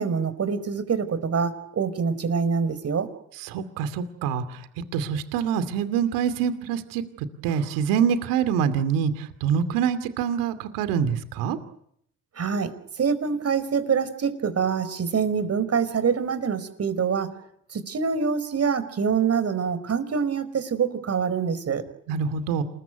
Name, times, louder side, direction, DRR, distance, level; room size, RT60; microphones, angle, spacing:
voice 1, 0.0-3.1 12.3-17.3 17.7-21.8, right 6 dB, 50° right, 12 dB, 5.0 m, -25 dB
voice 2, 3.4-11.6 22.1-22.6, right 7 dB, 90° right, 11 dB, 2.6 m, -25 dB
28.0 x 21.5 x 9.4 m, 0.71 s
supercardioid pair, 70°, 32 cm